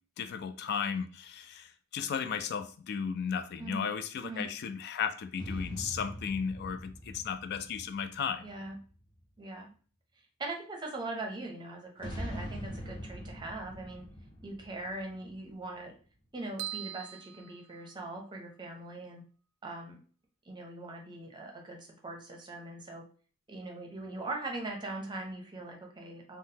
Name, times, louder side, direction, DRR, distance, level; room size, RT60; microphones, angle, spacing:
voice 1, 0.2-8.4, left 7 dB, 55° left, 9 dB, 0.3 m, -35 dB
sound 1, 5.4-9.1 12.0-15.8, equal, 25° left, 0.8 m, -43 dB
voice 2, 8.4-8.8 9.4-9.7 10.4-14.1 14.4-15.9 16.3-19.2 19.6-20.0 20.4-23.0 23.5-26.4, right 2 dB, 20° right, 1 dB, 0.7 m, -41 dB
sound 2, 16.6-18.4, right 14 dB, 80° right, 0.3 m, -42 dB
3.7 x 2.1 x 2.7 m, 0.41 s
head